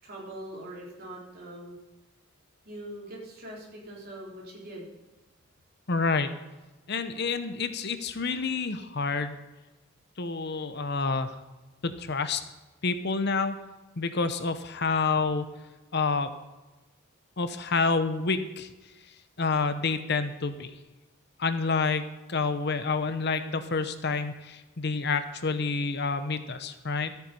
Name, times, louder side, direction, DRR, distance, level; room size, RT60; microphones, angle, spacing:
voice 1, 0.0-1.8 2.6-4.9, right 1 dB, 45° right, -3 dB, 4.0 m, -42 dB
voice 2, 5.9-6.3 6.9-9.4 10.2-11.3 11.8-12.4 12.8-13.6 14.0-15.5 15.9-16.3 17.4-18.7 19.4-20.7 21.4-27.1, left 4 dB, 55° left, 10 dB, 0.8 m, -28 dB
13.5 x 9.3 x 5.4 m, 1.1 s
head